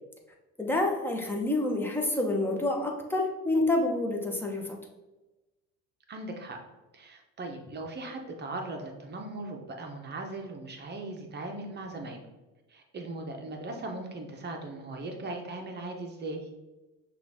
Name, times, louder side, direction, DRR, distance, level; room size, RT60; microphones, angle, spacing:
voice 1, 0.6-4.8, left 2 dB, 5° left, 1 dB, 0.9 m, -28 dB
voice 2, 6.1-6.6 6.9-12.2 12.7-16.5, right 2 dB, 35° right, 2 dB, 0.8 m, -39 dB
5.8 x 2.5 x 3.5 m, 1.1 s
supercardioid pair, 100°, 30 cm